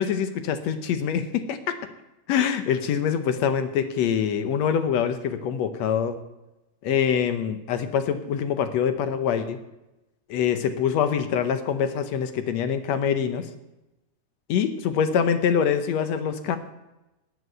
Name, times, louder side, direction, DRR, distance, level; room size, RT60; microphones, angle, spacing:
voice 1, 0.0-1.6 2.3-6.2 6.8-9.6 10.3-13.5 14.5-16.6, left 8 dB, 70° left, 9 dB, 2.0 m, -24 dB
12.0 x 8.2 x 7.8 m, 0.96 s
omnidirectional pair, 3.5 m